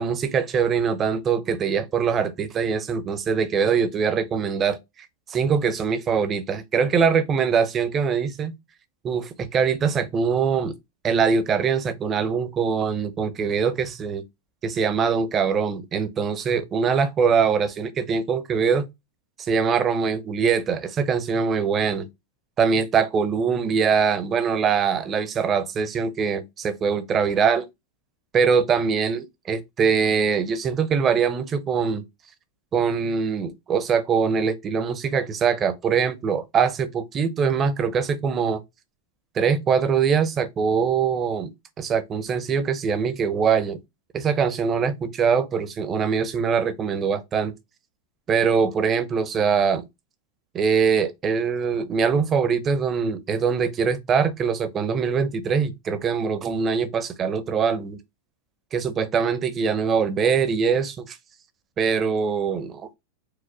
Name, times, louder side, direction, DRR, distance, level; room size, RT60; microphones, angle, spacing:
voice 1, 0.0-8.5 9.0-10.7 11.0-14.2 14.6-18.9 19.4-22.1 22.6-27.7 28.3-32.0 32.7-38.6 39.3-41.5 41.8-43.8 44.1-47.5 48.3-49.9 50.5-58.0 58.7-61.2 61.8-62.9, right 6 dB, 25° right, 0.6 m, -23 dB
4.8 x 2.0 x 4.5 m
supercardioid pair, 145°, 0 cm